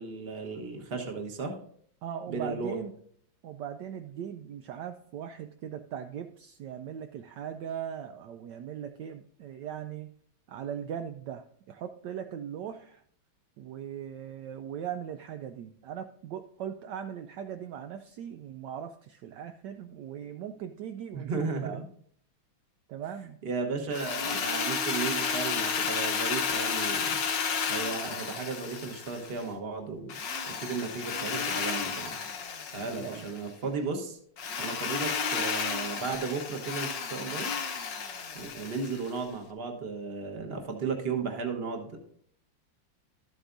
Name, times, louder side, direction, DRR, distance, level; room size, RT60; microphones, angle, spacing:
voice 1, 0.0-1.6 2.3-2.8 21.1-21.8 23.4-27.2 27.7-30.2 30.5-32.2 32.7-34.2 34.6-37.5 38.3-42.0, right 4 dB, 35° right, 3 dB, 1.2 m, -35 dB
voice 2, 2.0-2.9 3.4-10.1 10.5-13.0 13.6-21.8 22.9-23.4 32.8-33.3, right 9 dB, 75° right, 7 dB, 1.1 m, -39 dB
Drill, 23.9-29.4 30.1-33.4 34.4-39.2, left 6 dB, 70° left, 1.7 m, -32 dB
12.5 x 8.0 x 2.6 m, 0.62 s
omnidirectional pair, 2.1 m